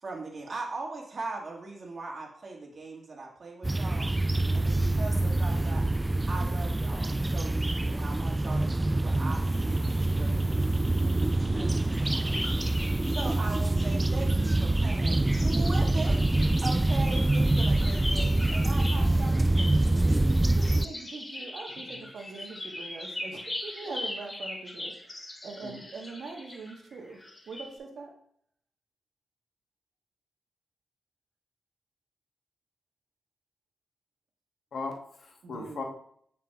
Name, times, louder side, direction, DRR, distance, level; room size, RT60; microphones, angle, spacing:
voice 1, 0.0-4.1 4.5-5.9 6.3-10.6 11.0-16.2 16.6-20.1, right 3 dB, 55° right, -1 dB, 1.8 m, -40 dB
sound 1, 3.6-20.9, right 2 dB, 20° right, 0.3 m, -25 dB
sound 2, 12.3-13.3 13.7-14.9 15.2-27.7, left 1 dB, 30° left, 2.7 m, -40 dB
voice 2, 20.6-24.9 25.4-27.2 27.5-28.1 35.4-35.8, right 3 dB, 75° right, 2 dB, 1.3 m, -42 dB
voice 3, 34.7-35.8, left 3 dB, 70° left, 2 dB, 1.2 m, -38 dB
6.8 x 6.1 x 2.4 m, 0.64 s
supercardioid pair, 40°, 0 cm